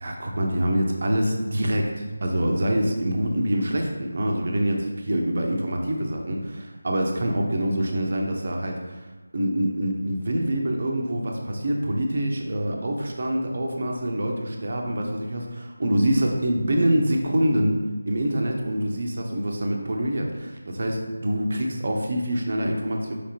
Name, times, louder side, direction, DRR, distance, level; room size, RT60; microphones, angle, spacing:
voice 1, 0.0-9.0 9.3-17.8 18.1-23.1, right 1 dB, 45° right, 1 dB, 0.7 m, -25 dB
4.8 x 3.4 x 2.9 m, 1.2 s
figure-of-eight pair, 165°, 0 cm